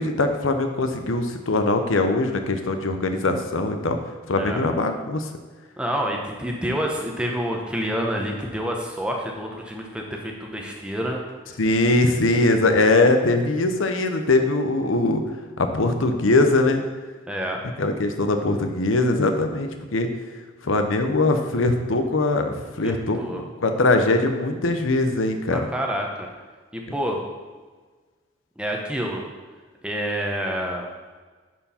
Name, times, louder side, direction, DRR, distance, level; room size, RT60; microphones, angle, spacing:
voice 1, 0.0-4.0 4.3-5.3 11.6-15.2 15.6-16.8 17.8-20.1 20.6-25.7, left 2 dB, 90° left, 6 dB, 0.8 m, -21 dB
voice 2, 5.8-11.2 12.6-13.0 17.3-17.6 22.8-23.4 25.5-26.3 26.7-27.2 28.6-29.2 29.8-30.9, equal, 5° right, 0 dB, 0.9 m, -28 dB
11.0 x 4.6 x 4.3 m, 1.4 s
head